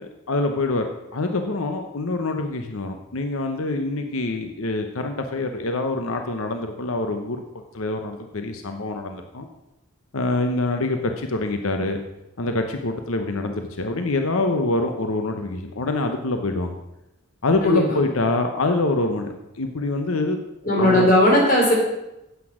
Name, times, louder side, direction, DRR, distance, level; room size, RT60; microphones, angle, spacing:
voice 1, 0.0-7.4 7.7-9.5 10.1-12.0 12.4-16.8 17.4-20.4 20.8-21.1, left 2 dB, 75° left, 5 dB, 0.9 m, -25 dB
voice 2, 17.6-18.0 20.6-21.7, left 1 dB, 40° left, -2 dB, 3.8 m, -17 dB
9.7 x 8.4 x 6.2 m, 0.92 s
head